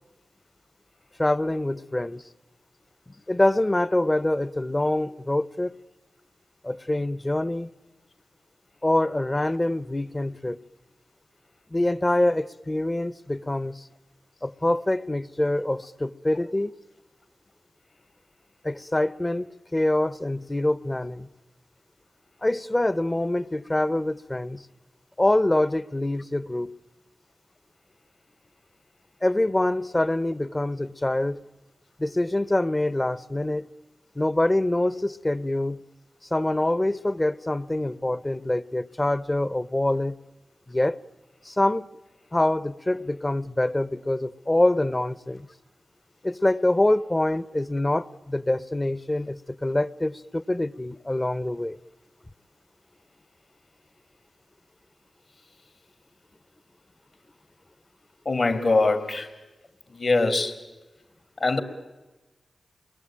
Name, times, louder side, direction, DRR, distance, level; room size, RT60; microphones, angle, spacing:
voice 1, 1.2-2.2 3.3-5.8 6.6-7.7 8.8-10.6 11.7-13.9 14.4-16.7 18.6-19.5 19.7-21.3 22.4-24.6 25.2-26.8 29.2-31.4 32.0-33.7 34.2-35.8 36.3-40.2 40.7-41.0 41.5-41.8 42.3-45.5 46.2-51.8, left 1 dB, 25° left, 0.9 m, -25 dB
voice 2, 58.2-59.3 59.9-60.6 61.4-61.6, left 3 dB, 60° left, 3.0 m, -22 dB
28.5 x 21.5 x 8.9 m
cardioid pair, 40°, 0 cm